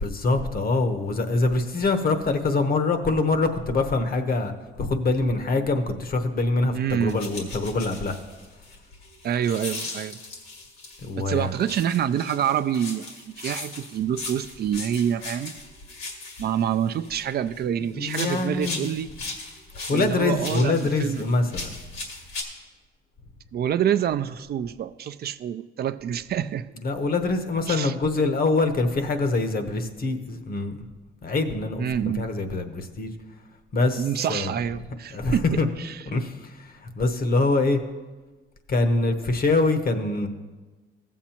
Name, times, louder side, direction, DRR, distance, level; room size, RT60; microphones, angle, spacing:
voice 1, 0.0-4.5 4.8-8.2 11.0-11.6 17.9-18.9 19.9-21.7 26.8-30.7 31.2-31.9 32.1-33.1 33.7-34.5 35.1-35.7 36.1-37.8 38.7-40.3, left 3 dB, 50° left, 8 dB, 0.9 m, -24 dB
voice 2, 6.7-7.2 9.2-10.2 11.3-13.1 13.4-15.5 16.4-19.1 19.9-21.2 23.5-26.7 27.7-27.9 31.8-32.3 34.0-36.0, right 9 dB, 55° right, 12 dB, 0.4 m, -27 dB
sound 1, 7.1-11.1 11.5-17.7 18.0-22.4, left 3 dB, 80° left, 2.0 m, -38 dB
15.5 x 7.3 x 2.9 m, 1.3 s
cardioid pair, 90°, 20 cm